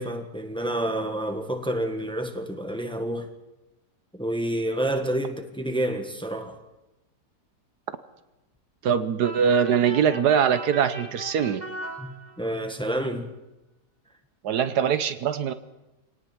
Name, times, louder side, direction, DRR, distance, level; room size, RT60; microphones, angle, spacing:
voice 1, 0.0-3.3 4.1-6.6 12.0-13.3, right 1 dB, 5° left, 1.5 m, -29 dB
voice 2, 8.8-11.6 14.4-15.5, right 7 dB, 75° right, 1.4 m, -22 dB
sound 1, 9.2-12.7, right 2 dB, 25° right, 1.9 m, -39 dB
24.5 x 18.5 x 6.0 m
omnidirectional pair, 1.8 m